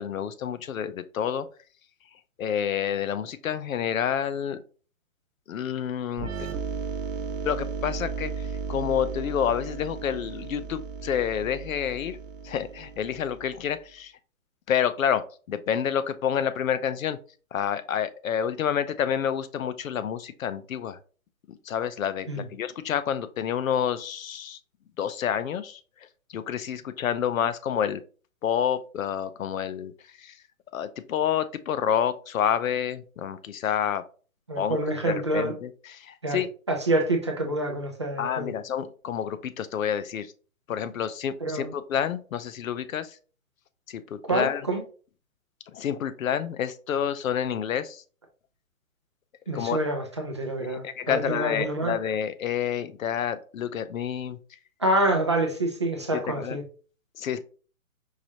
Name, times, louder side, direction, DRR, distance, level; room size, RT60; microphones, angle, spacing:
voice 1, 0.0-1.5 2.4-4.6 5.5-6.3 7.4-12.2 12.4-14.1 14.7-17.2 17.5-21.0 21.5-24.6 25.0-25.8 26.3-28.0 28.4-29.9 30.2-30.4 30.7-34.0 34.5-34.8 35.0-36.5 38.2-40.3 40.7-43.2 43.9-44.6 45.7-48.0 49.5-49.8 50.6-54.4 56.1-56.6 57.2-57.4, left 8 dB, 70° left, 0.6 m, -28 dB
sound 1, 6.2-13.8, right 5 dB, 65° right, 0.8 m, -35 dB
voice 2, 34.5-35.5 36.2-36.4 36.7-38.5 41.4-41.7 44.3-44.8 49.5-52.0 54.8-56.6, right 1 dB, 25° right, 0.3 m, -27 dB
4.8 x 2.9 x 2.7 m
hypercardioid pair, 140°, 42 cm